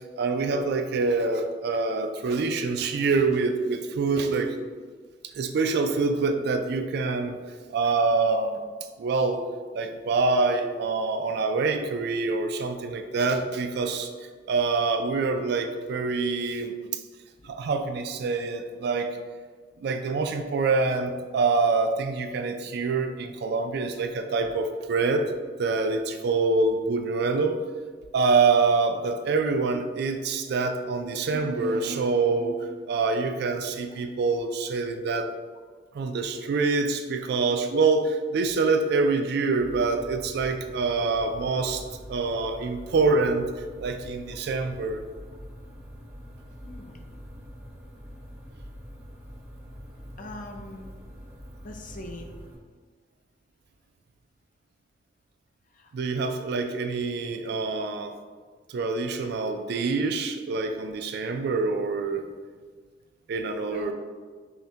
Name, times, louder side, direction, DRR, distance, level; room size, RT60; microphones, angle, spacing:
voice 1, 0.2-4.6 5.4-7.4 7.7-8.6 9.0-9.5 9.7-14.1 14.5-17.0 17.4-19.2 19.8-25.3 25.6-27.6 28.1-35.3 35.9-41.8 42.1-43.5 43.8-45.0 55.9-58.2 58.7-62.3 63.3-63.9, right 4 dB, 60° right, 7 dB, 0.3 m, -25 dB
sound 1, 39.6-52.5, equal, 15° right, 0.7 m, -44 dB
voice 2, 46.6-47.0 50.2-50.9 51.6-52.3 63.7-63.9, left 2 dB, 45° left, 4 dB, 0.5 m, -40 dB
5.6 x 2.2 x 2.7 m, 1.5 s
head